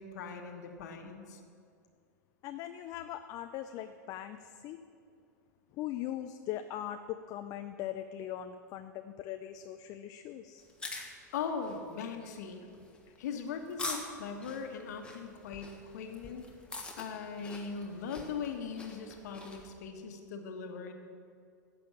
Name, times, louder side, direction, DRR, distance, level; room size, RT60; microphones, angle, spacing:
voice 1, 0.0-1.4 11.0-12.6 13.2-16.4 17.0-20.9, left 6 dB, 65° left, 5 dB, 1.4 m, -40 dB
voice 2, 2.4-4.8 5.8-10.6, left 11 dB, 40° left, 8 dB, 0.5 m, -40 dB
sound 1, 10.6-19.7, left 2 dB, 10° left, 1.5 m, -45 dB
11.0 x 6.9 x 7.3 m, 2.4 s
hypercardioid pair, 95°, 10 cm